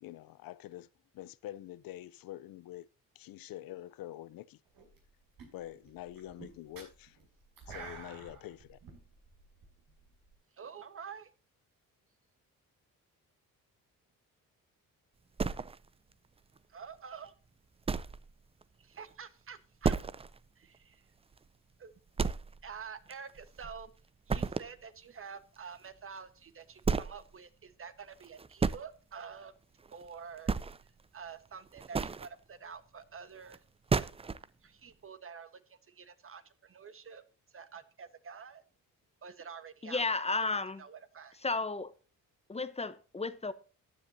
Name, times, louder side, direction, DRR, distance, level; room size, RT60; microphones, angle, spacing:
voice 1, 0.0-0.9 1.1-2.9 3.2-4.6 5.5-7.2 7.7-8.8, left 14 dB, 80° left, 0.6 m, -46 dB
sound 1, 4.7-5.1 5.4-10.3, right 4 dB, 85° right, 6.5 m, -50 dB
voice 2, 10.5-11.3 16.7-17.3 18.8-20.0 20.6-21.1 21.8-21.9 22.6-23.9 24.3-29.5 29.9-30.5 31.1-33.6 34.6-37.2 37.5-38.6 39.2-40.1 40.8-41.4, right 6 dB, 40° right, 1.3 m, -48 dB
sound 2, 15.4-16.1 16.6-16.7 17.1-17.2 17.9-18.3 18.6-18.7 19.1-19.2 19.8-20.4 20.7-20.8 21.3-21.4 22.2-22.8 23.1-23.9 24.3-24.8 26.1-26.2 26.8-27.2 28.2-28.8 29.8-30.1 30.4-31.0 31.7-32.3 33.5-33.6 33.9-34.4, right 5 dB, 15° right, 0.4 m, -32 dB
voice 3, 39.8-40.8 41.4-41.9 42.5-43.5, left 3 dB, 20° left, 0.9 m, -33 dB
15.0 x 10.0 x 2.7 m
cardioid pair, 110°, 34 cm